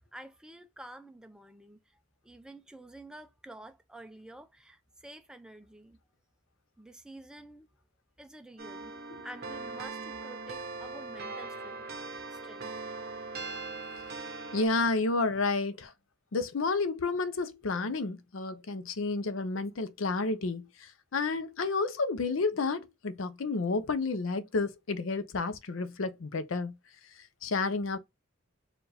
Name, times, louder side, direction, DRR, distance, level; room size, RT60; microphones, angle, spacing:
voice 1, 0.1-1.8 2.2-6.0 6.8-7.7 8.2-8.9 9.2-11.8 12.3-12.7, right 1 dB, 5° right, 0.5 m, -49 dB
sound 1, 8.6-14.7, right 3 dB, 50° right, 0.8 m, -40 dB
voice 2, 14.5-15.9 16.3-26.8 27.4-28.0, left 3 dB, 75° left, 0.6 m, -31 dB
4.6 x 2.4 x 3.4 m
head